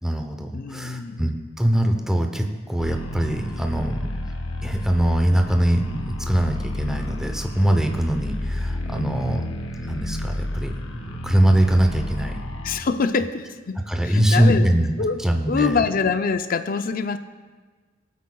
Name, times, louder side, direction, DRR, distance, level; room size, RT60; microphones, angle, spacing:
voice 1, 0.0-4.1 4.6-9.5 9.8-12.4 13.9-14.9 15.2-15.8, right 1 dB, 5° right, 4 dB, 0.7 m, -22 dB
voice 2, 0.5-1.2 12.6-14.7 15.0-17.2, left 5 dB, 45° left, 9 dB, 0.4 m, -25 dB
sound 1, 2.8-12.8, left 1 dB, 80° left, 0.8 m, -31 dB
18.0 x 8.4 x 2.3 m, 1.4 s
head